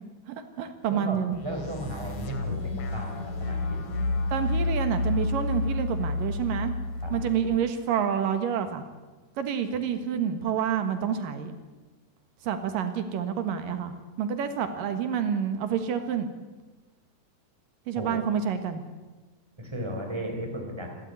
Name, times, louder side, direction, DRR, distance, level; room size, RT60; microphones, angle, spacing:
voice 1, 0.3-1.4 4.3-6.7 7.1-8.8 9.4-11.5 12.4-13.9 14.2-16.3 17.9-18.8, right 8 dB, 85° right, 8 dB, 3.2 m, -28 dB
voice 2, 0.9-3.8 7.0-7.1 18.0-18.2 19.6-20.9, equal, 10° right, 2 dB, 3.9 m, -35 dB
sound 1, 1.3-7.6, left 2 dB, 65° left, 3.4 m, -30 dB
27.5 x 13.0 x 9.5 m, 1.2 s
omnidirectional pair, 3.8 m